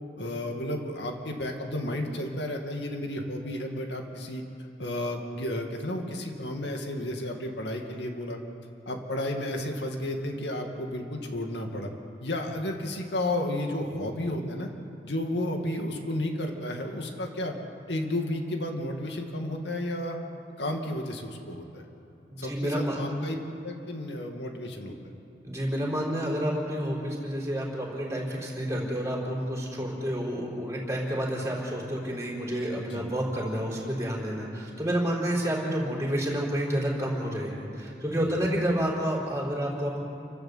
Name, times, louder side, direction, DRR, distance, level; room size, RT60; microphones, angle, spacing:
voice 1, 0.2-4.4 4.8-8.4 8.9-11.9 12.2-14.7 15.0-17.5 17.9-20.2 20.6-21.8 22.4-23.4 23.6-24.9 32.9-33.1 38.2-38.4, left 1 dB, 75° left, 3 dB, 2.3 m, -32 dB
voice 2, 22.3-23.0 25.4-40.0, equal, 15° right, -2 dB, 4.4 m, -29 dB
29.5 x 12.0 x 8.1 m, 2.9 s
head